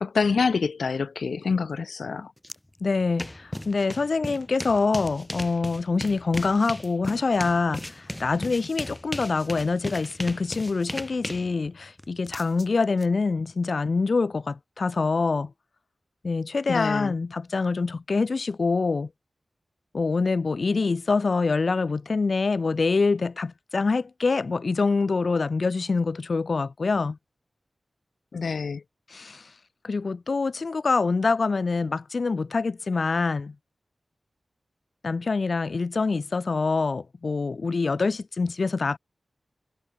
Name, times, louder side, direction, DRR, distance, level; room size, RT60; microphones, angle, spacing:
voice 1, 0.0-2.3 16.7-17.1 28.3-28.8, left 5 dB, 80° left, 1.3 m, -26 dB
sound 1, 2.4-2.6 2.9-13.0, left 1 dB, 15° left, 2.2 m, -36 dB
voice 2, 2.8-15.5 16.2-19.1 19.9-27.2 29.1-29.5 29.8-33.5 35.0-39.0, left 4 dB, 60° left, 1.1 m, -25 dB
wide cardioid pair, 75°, 0 cm